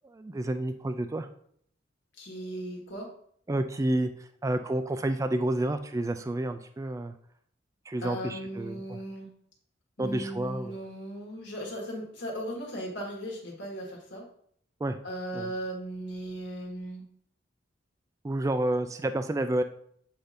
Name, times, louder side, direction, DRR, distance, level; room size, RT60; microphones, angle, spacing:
voice 1, 0.0-1.3 3.5-7.1 7.9-9.0 10.0-10.8 14.8-15.0 15.3-15.5 18.2-19.6, right 1 dB, 15° right, 8 dB, 0.3 m, -30 dB
voice 2, 2.2-3.1 8.0-9.3 10.0-14.2 15.0-17.0, equal, 70° left, -2 dB, 1.8 m, -37 dB
7.9 x 2.7 x 5.1 m, 0.65 s
head